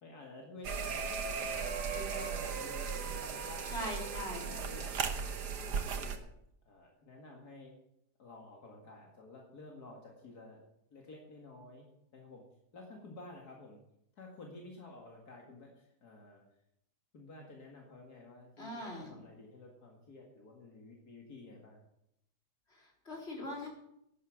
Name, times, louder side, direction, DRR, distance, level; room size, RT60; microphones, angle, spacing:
voice 1, 0.0-0.7 1.5-3.7 4.5-6.2 6.7-7.7 8.2-10.6 10.9-11.9 12.1-12.4 12.7-13.8 14.2-16.4 17.1-21.8, left 2 dB, 70° left, 0 dB, 2.6 m, -52 dB
sound 1, 0.6-6.2, right 6 dB, 85° right, 1.8 m, -37 dB
voice 2, 3.7-4.5 18.6-19.2 22.7-23.7, left 1 dB, 40° left, -1 dB, 4.0 m, -41 dB
11.5 x 9.9 x 7.4 m, 0.77 s
omnidirectional pair, 1.7 m